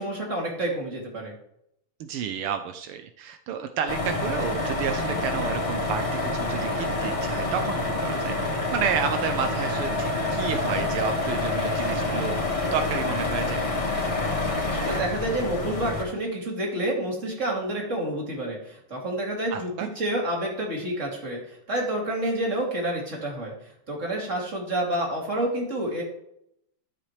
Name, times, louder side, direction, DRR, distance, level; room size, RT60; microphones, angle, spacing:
voice 1, 0.0-1.3 14.7-21.4 21.7-23.5 23.9-26.0, right 1 dB, 35° right, -2 dB, 3.3 m, -29 dB
voice 2, 2.0-12.4 12.7-13.6 19.5-19.9, right 8 dB, 85° right, 7 dB, 1.7 m, -31 dB
sound 1, 3.9-16.0, left 2 dB, 15° left, 1.6 m, -27 dB
13.0 x 7.5 x 3.3 m, 0.75 s
omnidirectional pair, 2.4 m